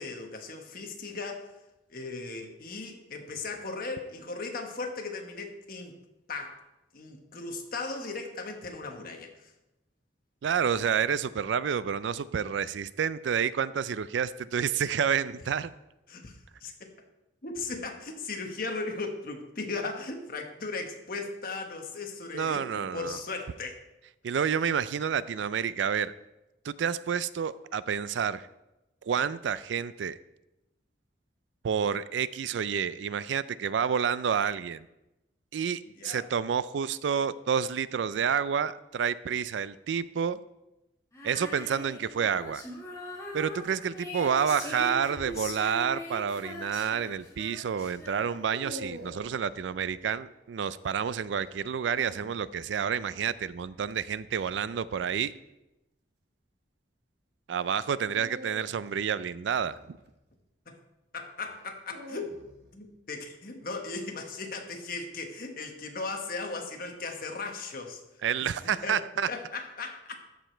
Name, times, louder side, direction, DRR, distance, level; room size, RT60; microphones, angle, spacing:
voice 1, 0.0-1.5 1.9-5.9 6.3-6.6 6.9-9.5 16.1-16.9 17.4-23.8 35.9-36.3 60.7-60.8 61.1-62.4 62.7-68.0 68.6-69.0 69.3-70.1, left 3 dB, 50° left, 3 dB, 1.3 m, -37 dB
voice 2, 10.4-15.7 22.3-23.2 24.2-26.1 26.6-28.5 29.0-30.2 31.6-34.9 35.5-40.4 41.2-42.6 43.3-55.3 57.5-60.0 68.2-69.3, right 7 dB, 80° right, 16 dB, 0.4 m, -29 dB
Female singing, 41.1-48.6, left 1 dB, 15° left, 1.8 m, -41 dB
sound 1, 48.1-49.4 51.4-52.4 54.9-55.3 58.0-60.4 61.5-62.8, equal, 65° right, 1.2 m, -46 dB
13.5 x 5.1 x 4.5 m, 0.95 s
head